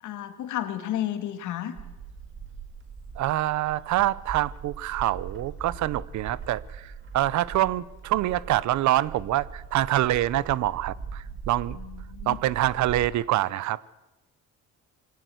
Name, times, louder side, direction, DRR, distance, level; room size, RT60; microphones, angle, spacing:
voice 1, 0.0-1.7 11.7-12.4, left 12 dB, 90° left, 9 dB, 2.1 m, -32 dB
Bird, 1.7-13.1, right 5 dB, 40° right, 2.0 m, -41 dB
voice 2, 3.2-11.8 12.3-13.8, right 14 dB, 75° right, 21 dB, 0.7 m, -26 dB
22.5 x 17.5 x 7.8 m, 1.0 s
cardioid pair, 145°, 29 cm